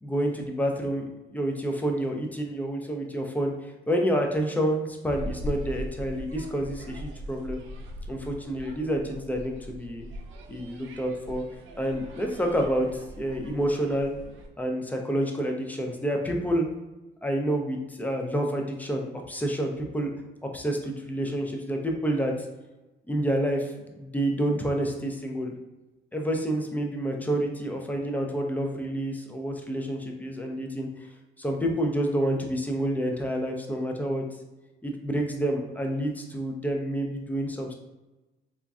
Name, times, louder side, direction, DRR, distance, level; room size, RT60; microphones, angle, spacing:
voice 1, 0.0-7.6 8.1-10.0 10.5-11.4 11.8-14.1 14.6-16.7 17.2-20.1 20.4-22.3 23.1-25.5 26.1-30.9 31.4-34.2 34.8-37.7, right 1 dB, 10° left, 2 dB, 0.4 m, -28 dB
sound 1, 5.1-14.5, equal, 80° right, 0.4 m, -40 dB
3.0 x 2.4 x 2.3 m, 1.1 s
cardioid pair, 90°, 20 cm